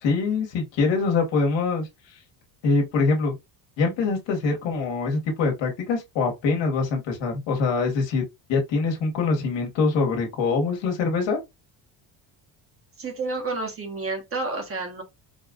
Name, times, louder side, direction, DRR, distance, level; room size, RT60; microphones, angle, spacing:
voice 1, 0.0-1.9 2.6-3.4 3.8-8.2 8.5-11.4, left 4 dB, 65° left, 1.4 m, -24 dB
voice 2, 13.0-15.0, right 3 dB, 30° right, 1.1 m, -30 dB
4.5 x 2.4 x 2.3 m
cardioid pair, 140°, 47 cm